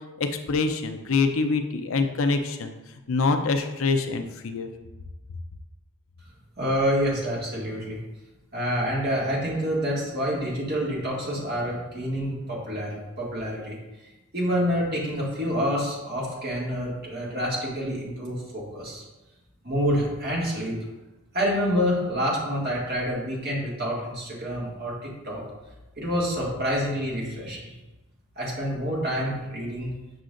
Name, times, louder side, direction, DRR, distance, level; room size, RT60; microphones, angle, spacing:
voice 1, 0.2-2.7 3.1-4.7, left 4 dB, 70° left, 6 dB, 0.5 m, -25 dB
voice 2, 6.6-8.0 8.5-13.8 14.3-19.0 19.6-20.8 21.3-25.4 26.0-27.6 28.4-29.9, equal, 45° right, -5 dB, 2.0 m, -27 dB
7.9 x 5.7 x 2.5 m, 1.1 s
head